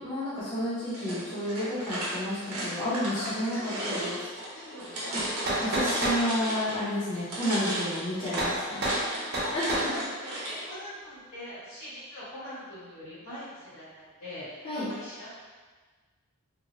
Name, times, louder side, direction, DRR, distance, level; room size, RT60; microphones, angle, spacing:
voice 1, 0.0-4.2 5.3-5.4 5.7-8.8 9.5-10.0 14.6-14.9, left 1 dB, 25° left, -10 dB, 0.6 m, -31 dB
sound 1, 0.9-6.8 7.1-10.6, right 1 dB, 85° right, 0.8 m, -35 dB
voice 2, 3.1-3.9 4.5-6.1 9.1-15.3, equal, 90° left, -11 dB, 1.5 m, -43 dB
sound 2, 5.2-6.2 8.4-8.6 8.8-9.0 9.3-9.9, right 1 dB, 50° right, 0.6 m, -28 dB
3.0 x 2.1 x 2.5 m, 1.4 s
head